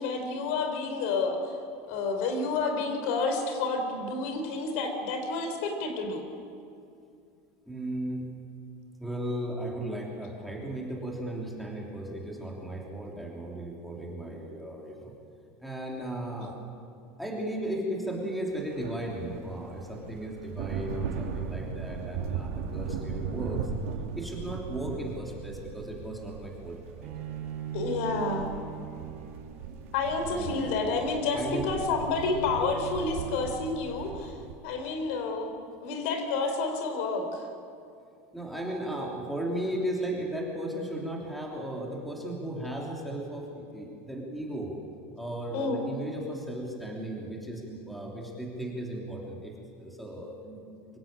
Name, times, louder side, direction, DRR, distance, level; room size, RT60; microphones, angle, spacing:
voice 1, 0.0-1.5 1.9-6.3 27.7-28.6 29.9-34.3 34.6-35.5 35.8-37.4 45.5-45.8, left 3 dB, 65° left, 5 dB, 4.2 m, -29 dB
voice 2, 7.7-8.3 9.0-15.1 15.6-16.6 17.2-23.6 24.1-27.1 30.3-30.6 31.3-31.7 38.3-44.7 45.2-51.0, right 1 dB, ahead, -2 dB, 3.0 m, -36 dB
sound 1, 18.5-34.5, right 6 dB, 90° right, 2.6 m, -38 dB
Bowed string instrument, 27.0-34.1, right 8 dB, 55° right, 5.3 m, -41 dB
25.0 x 16.5 x 8.9 m, 2.4 s
supercardioid pair, 165°, 7 cm